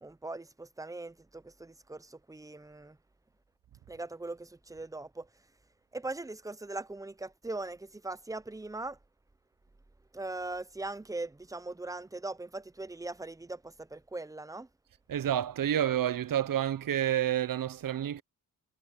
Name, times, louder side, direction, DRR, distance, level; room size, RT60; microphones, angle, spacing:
voice 1, 0.0-3.0 3.9-5.3 5.9-9.0 10.1-14.7, right 2 dB, 10° right, 0.4 m, -40 dB
voice 2, 15.1-18.2, right 11 dB, 65° right, 0.6 m, -29 dB
wide cardioid pair, 160°, 37 cm